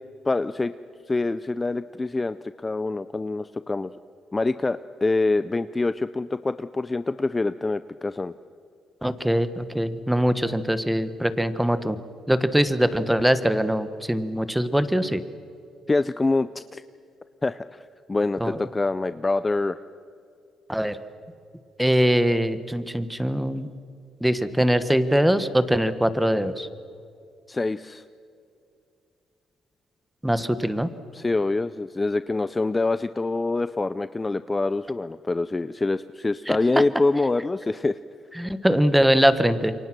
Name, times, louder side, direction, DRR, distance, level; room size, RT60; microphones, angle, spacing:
voice 1, 0.2-0.7 1.1-3.9 4.3-8.3 15.9-16.8 17.4-17.8 18.1-19.8 27.5-28.0 31.1-38.0, left 3 dB, 20° left, 13 dB, 0.6 m, -25 dB
voice 2, 9.0-12.0 12.3-15.2 18.4-18.6 20.7-21.0 21.8-23.7 24.2-26.7 30.2-30.9 36.5-36.6 38.4-39.7, equal, 5° right, 12 dB, 1.4 m, -22 dB
28.0 x 24.0 x 6.2 m, 2.5 s
cardioid pair, 90°, 0 cm